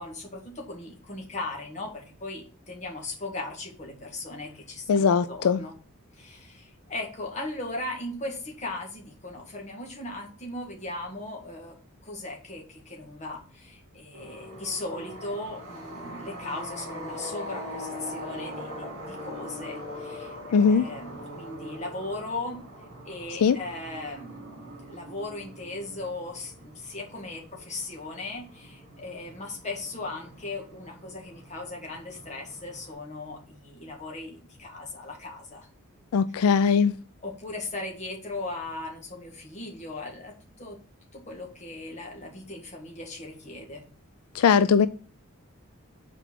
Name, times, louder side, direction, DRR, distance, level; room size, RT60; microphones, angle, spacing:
voice 1, 0.0-5.8 6.1-11.8 12.0-22.6 23.0-35.7 37.2-40.8 41.1-43.8, left 2 dB, 35° left, 1.8 m, -38 dB
voice 2, 4.9-5.6 20.5-20.8 23.4-23.6 36.1-36.9 44.3-44.9, left 6 dB, 85° left, 0.4 m, -20 dB
sound 1, 14.1-32.9, equal, 50° right, 3.1 m, -42 dB
6.0 x 4.5 x 5.8 m
head